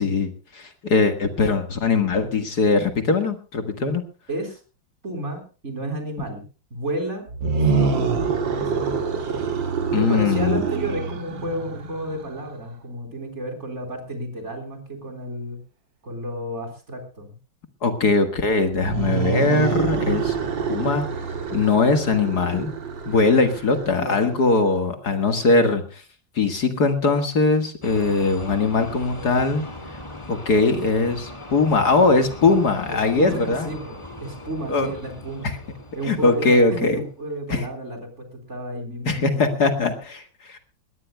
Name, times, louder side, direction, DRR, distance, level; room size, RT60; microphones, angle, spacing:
voice 1, 0.0-4.0 9.9-10.6 17.8-20.4 20.7-21.1 21.5-22.7 23.1-26.0 26.4-29.7 30.3-33.7 34.7-34.9 36.0-37.0 37.5-37.6 39.1-40.6, left 3 dB, 55° left, 8 dB, 2.1 m, -21 dB
voice 2, 4.3-4.6 5.0-7.3 7.5-8.2 8.6-9.0 10.0-15.6 16.0-17.3 24.0-24.3 32.9-35.5 35.9-39.6, right 1 dB, 35° right, 5 dB, 4.3 m, -32 dB
sound 1, 7.3-12.5 18.7-24.4, right 5 dB, 65° right, 2.8 m, -26 dB
sound 2, 27.8-37.2, left 2 dB, 15° left, 1.6 m, -39 dB
22.0 x 18.5 x 2.2 m, 0.35 s
omnidirectional pair, 2.2 m